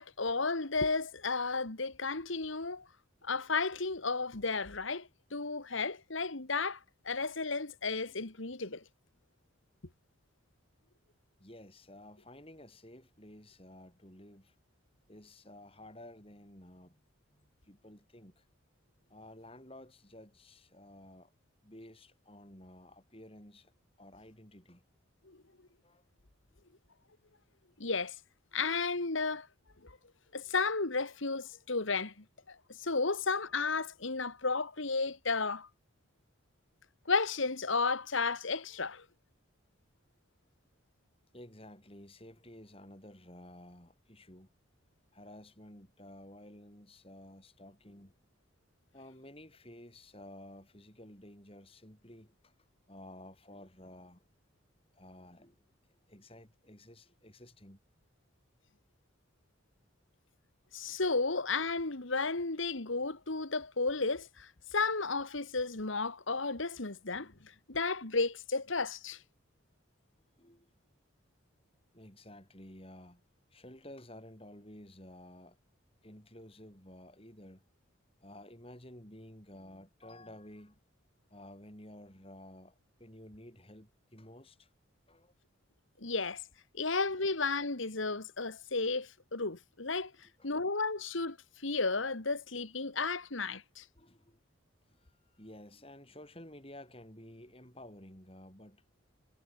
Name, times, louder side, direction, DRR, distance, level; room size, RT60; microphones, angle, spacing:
voice 1, 0.0-2.9 3.2-6.8 7.1-8.8 25.3-25.4 27.8-28.2 28.5-29.5 29.8-30.0 30.3-35.7 37.1-39.1 60.7-69.2 86.0-86.4 86.7-90.1 90.4-91.4 91.6-93.8, left 4 dB, 70° left, 1.9 m, -33 dB
voice 2, 11.4-14.6 15.1-17.0 17.3-18.5 19.1-21.3 21.6-23.7 24.0-24.8 25.8-26.0 41.3-44.5 45.1-48.1 48.9-52.6 52.9-54.2 54.9-55.5 55.9-57.8 70.4-70.7 71.9-73.2 73.5-75.6 76.0-77.6 78.2-80.8 81.3-84.7 85.1-85.3 90.2-90.5 94.0-94.4 94.9-98.8, left 1 dB, 25° left, 6.2 m, -53 dB
head